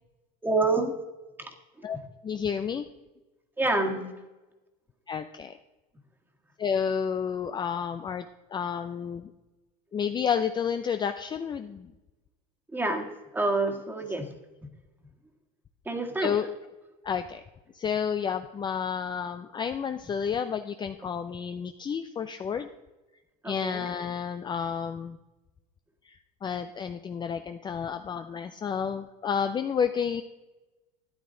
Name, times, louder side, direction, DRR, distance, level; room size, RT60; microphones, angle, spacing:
voice 1, 0.4-0.9 1.4-1.9 3.6-4.1 12.7-14.3 15.9-16.4 23.4-23.9, right 2 dB, 10° right, 3 dB, 1.7 m, -28 dB
voice 2, 2.2-2.9 5.1-5.6 6.6-8.3 8.5-9.3 9.9-11.9 16.2-16.5 17.0-17.4 17.7-22.7 23.4-25.2 26.0-30.2, left 7 dB, 20° left, 8 dB, 0.5 m, -30 dB
13.0 x 9.5 x 3.8 m, 1.1 s
supercardioid pair, 115°, 20 cm